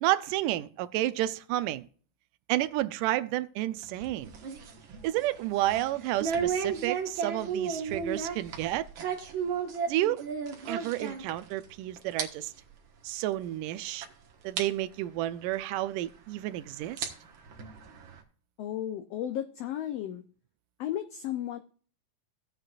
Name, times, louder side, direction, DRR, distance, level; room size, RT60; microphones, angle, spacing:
voice 1, 0.0-1.9 2.5-4.3 5.0-8.9 9.9-10.2 10.7-12.5 13.0-14.1 14.4-17.1, right 15 dB, 90° right, 2.2 m, -31 dB
sound 1, 3.8-11.7 12.0-12.3 12.6-12.7 13.4-13.5 14.0-14.1 14.6-14.7 16.0-16.1 16.8-18.2, right 6 dB, 50° right, 1.6 m, -34 dB
voice 2, 18.6-20.2 20.8-21.6, left 11 dB, 90° left, 1.4 m, -34 dB
17.0 x 8.0 x 2.4 m
omnidirectional pair, 3.7 m